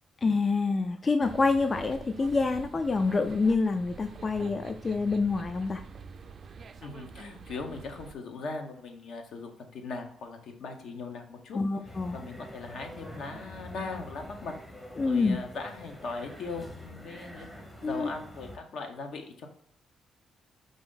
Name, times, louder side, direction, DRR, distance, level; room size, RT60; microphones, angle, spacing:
voice 1, 0.2-5.8 11.5-12.2 15.0-15.4 17.8-18.1, left 4 dB, 35° left, 8 dB, 0.3 m, -27 dB
sound 1, 1.2-8.2, right 5 dB, 45° right, 0.4 m, -46 dB
voice 2, 6.8-11.6 12.1-14.5 15.0-19.5, left 3 dB, 70° left, 4 dB, 0.8 m, -39 dB
sound 2, 11.8-18.6, left 1 dB, 10° left, 0.7 m, -46 dB
5.1 x 2.6 x 3.7 m, 0.70 s
cardioid pair, 90°, 0 cm